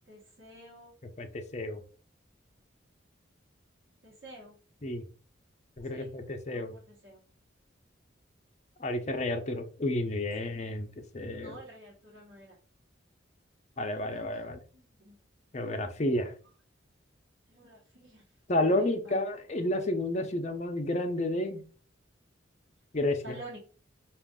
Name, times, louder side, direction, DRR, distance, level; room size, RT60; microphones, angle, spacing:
voice 1, 0.1-0.9 4.0-4.5 5.9-6.1 6.5-7.2 10.4-10.5 11.4-12.6 14.1-14.2 14.7-15.2 17.5-18.2 18.6-19.2 23.2-23.6, right 1 dB, 60° right, -6 dB, 1.2 m, -49 dB
voice 2, 1.2-1.8 4.8-5.0 5.8-6.7 8.8-10.9 11.1-11.6 13.8-14.6 15.5-16.3 18.5-21.6 22.9-23.4, left 1 dB, 35° left, 5 dB, 0.6 m, -31 dB
5.0 x 2.5 x 3.6 m, 0.39 s
head